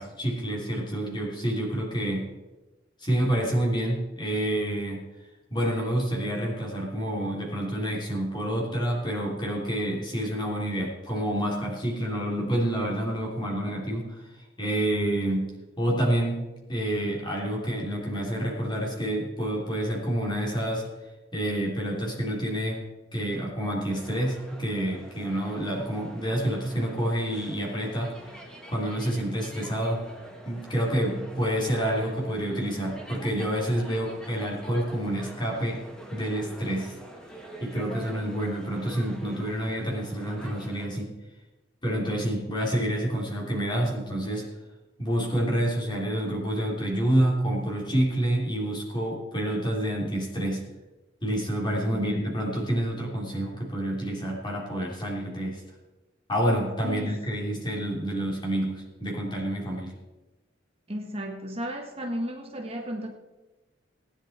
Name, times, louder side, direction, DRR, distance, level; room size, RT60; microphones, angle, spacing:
voice 1, 0.0-2.3 3.0-5.1 5.5-14.2 14.6-15.5 15.8-20.8 21.3-22.8 23.1-28.2 28.7-30.0 30.5-35.8 36.1-36.9 37.6-41.1 41.8-44.5 45.0-50.6 51.2-55.6 56.3-59.9, right 1 dB, 25° left, -2 dB, 3.4 m, -28 dB
sound 1, 23.9-40.9, equal, 5° left, 1.8 m, -46 dB
voice 2, 60.9-63.1, equal, 30° right, 1 dB, 1.5 m, -34 dB
19.0 x 10.0 x 4.4 m, 1.1 s
head